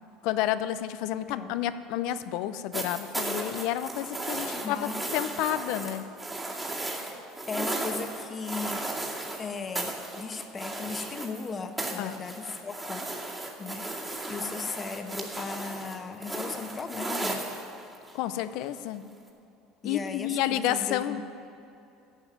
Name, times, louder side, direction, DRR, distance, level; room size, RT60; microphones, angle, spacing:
voice 1, 0.2-6.0 12.0-12.1 18.1-19.1 19.8-21.2, left 12 dB, 70° left, 13 dB, 0.5 m, -30 dB
sound 1, 2.7-9.4 9.7-11.5 11.8-18.1 19.3-19.4, right 2 dB, 15° right, 2.3 m, -35 dB
voice 2, 4.4-5.0 7.1-7.2 7.5-8.8 9.4-13.0 13.6-17.6 19.8-21.2, left 4 dB, 30° left, 6 dB, 1.1 m, -37 dB
11.0 x 7.2 x 9.2 m, 2.7 s
supercardioid pair, 95°, 0 cm